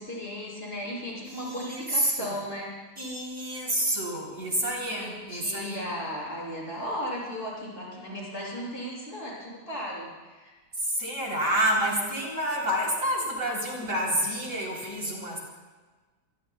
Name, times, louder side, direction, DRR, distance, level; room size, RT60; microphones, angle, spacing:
voice 1, 0.0-2.7 4.6-10.5, equal, 35° left, -5 dB, 7.3 m, -36 dB
voice 2, 1.2-2.3 3.0-5.9 10.8-15.4, right 1 dB, 50° right, -3 dB, 4.1 m, -29 dB
26.5 x 22.5 x 2.3 m, 1.3 s
omnidirectional pair, 1.9 m